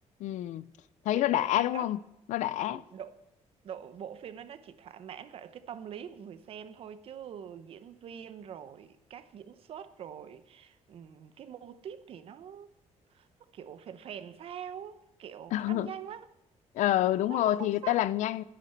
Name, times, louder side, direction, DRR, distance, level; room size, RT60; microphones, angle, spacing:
voice 1, 0.2-0.7 1.1-2.0 2.3-2.8 15.5-15.9 16.7-18.4, left 13 dB, 90° left, 0.5 m, -27 dB
voice 2, 1.0-1.9 2.6-3.2 3.6-12.7 13.1-13.3 13.5-16.2 17.3-18.0, right 8 dB, 50° right, 0.8 m, -44 dB
10.5 x 10.0 x 8.0 m
cardioid pair, 175°, 12 cm